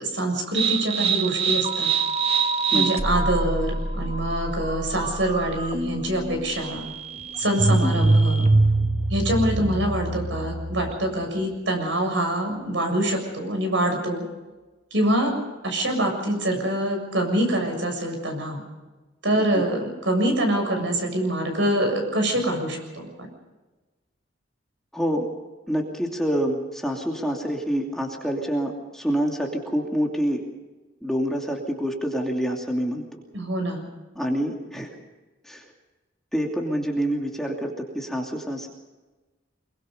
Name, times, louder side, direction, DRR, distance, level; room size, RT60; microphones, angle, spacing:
voice 1, 0.0-1.9 2.7-6.9 7.4-8.5 9.1-14.2 14.9-15.3 15.6-18.6 19.2-23.1 33.3-33.9, right 1 dB, 70° right, 4 dB, 7.1 m, -25 dB
sound 1, 0.5-11.1, right 3 dB, 30° right, 1.3 m, -24 dB
voice 2, 24.9-25.3 25.7-30.4 31.0-33.0 34.1-34.9 35.4-35.6 36.3-38.7, equal, ahead, 0 dB, 2.7 m, -27 dB
25.0 x 23.0 x 5.5 m, 1.2 s
head